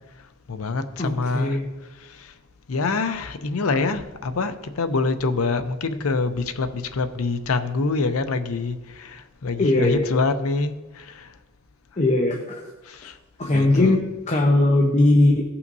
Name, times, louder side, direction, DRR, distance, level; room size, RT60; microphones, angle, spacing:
voice 1, 0.2-1.6 1.9-2.3 2.7-11.4 12.8-13.2 13.5-14.0, left 3 dB, 85° left, 0.7 m, -26 dB
voice 2, 1.0-1.6 9.6-10.1 12.0-12.6 13.4-14.0 14.3-15.4, left 2 dB, 35° left, 0.8 m, -19 dB
16.0 x 5.7 x 2.7 m
head